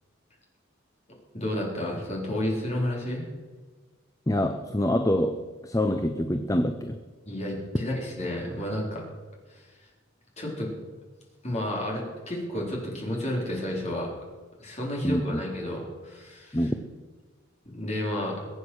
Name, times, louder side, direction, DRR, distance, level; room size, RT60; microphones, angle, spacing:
voice 1, 1.3-3.2 7.3-9.0 9.5-9.6 10.4-10.7 11.4-14.1 14.6-16.7 17.7-18.4, left 1 dB, 30° left, -2 dB, 4.1 m, -31 dB
voice 2, 4.3-7.0 15.0-15.4 16.5-16.7, left 1 dB, 15° left, 7 dB, 0.6 m, -26 dB
22.5 x 8.3 x 6.3 m, 1.4 s
head